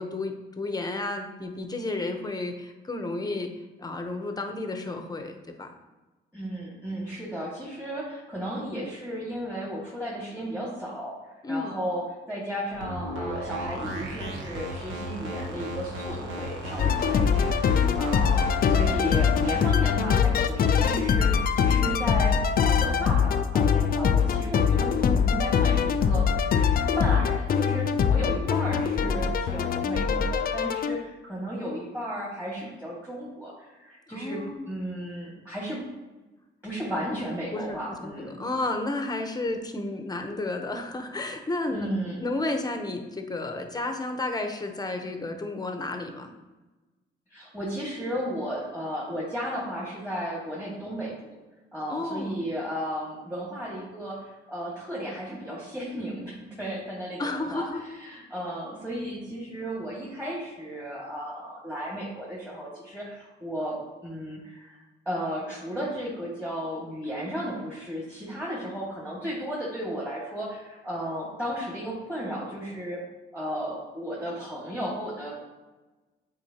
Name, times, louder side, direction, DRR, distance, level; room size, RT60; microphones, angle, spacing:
voice 1, 0.0-3.5 3.8-5.7 11.4-11.7 34.1-34.8 37.5-46.3 51.9-52.5 57.2-57.8 58.1-58.2 58.7-58.8, left 2 dB, 20° left, 5 dB, 0.9 m, -32 dB
voice 2, 6.3-11.1 11.5-26.2 27.0-35.8 36.6-38.4 41.7-42.3 47.3-51.4 51.7-57.7 58.0-64.8 65.1-73.1 73.3-75.3, equal, 5° right, -6 dB, 1.9 m, -34 dB
sound 1, 12.7-19.7, equal, 75° right, 1.3 m, -35 dB
sound 2, 16.8-31.0, left 7 dB, 50° left, 0.4 m, -23 dB
8.4 x 4.4 x 2.9 m, 1.2 s
cardioid pair, 90°, 20 cm